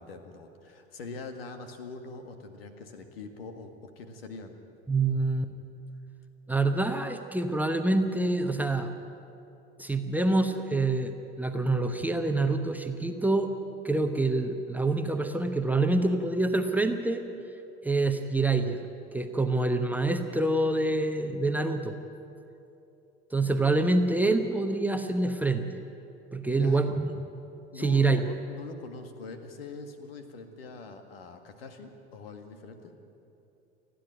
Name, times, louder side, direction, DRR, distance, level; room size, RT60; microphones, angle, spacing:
voice 1, 0.0-4.6 26.5-27.0 27.7-32.9, left 3 dB, 65° left, 7 dB, 1.9 m, -43 dB
voice 2, 4.9-5.5 6.5-8.9 9.8-13.5 13.8-17.2 17.8-18.8 19.1-22.0 23.3-25.6 26.3-27.1 27.7-28.2, right 2 dB, 5° right, 5 dB, 1.0 m, -26 dB
29.0 x 10.5 x 9.0 m, 2.8 s
figure-of-eight pair, 75°, 32 cm